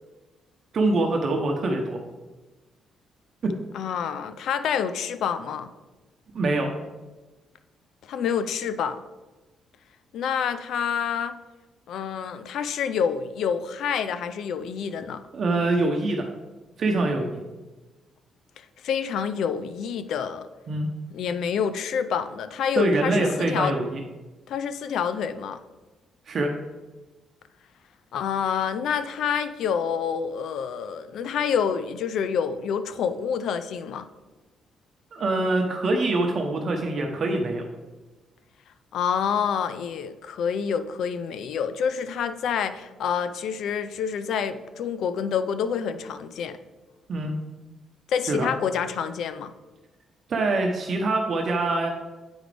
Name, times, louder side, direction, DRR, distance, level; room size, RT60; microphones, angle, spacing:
voice 1, 0.7-2.0 3.4-3.5 6.3-6.7 15.3-16.3 16.8-17.4 20.7-20.9 22.8-24.0 26.3-26.5 35.1-37.7 47.1-47.3 48.3-48.5 50.3-51.9, right 2 dB, 50° right, 2 dB, 0.8 m, -24 dB
voice 2, 3.7-5.7 8.1-9.0 10.1-11.4 11.9-15.2 18.8-20.5 21.1-23.8 24.5-25.6 28.1-34.1 38.9-46.6 48.1-49.5, left 7 dB, 75° left, 12 dB, 0.4 m, -27 dB
7.9 x 5.0 x 3.3 m, 1.2 s
cardioid pair, 90°, 0 cm